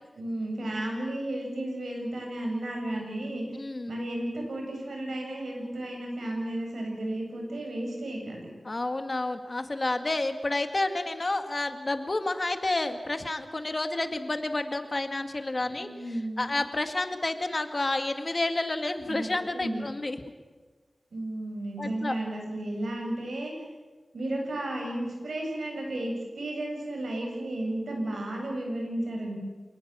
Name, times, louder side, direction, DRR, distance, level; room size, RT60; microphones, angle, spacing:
voice 1, 0.1-3.5 3.9-8.5 15.6-16.5 19.1-19.8 21.1-23.5 24.1-29.4, right 1 dB, 90° right, 1 dB, 7.8 m, -33 dB
voice 2, 3.6-3.9 8.6-20.2 21.8-22.2, left 2 dB, 40° left, 8 dB, 2.1 m, -30 dB
27.5 x 19.5 x 7.6 m, 1.3 s
wide cardioid pair, 75°, 0 cm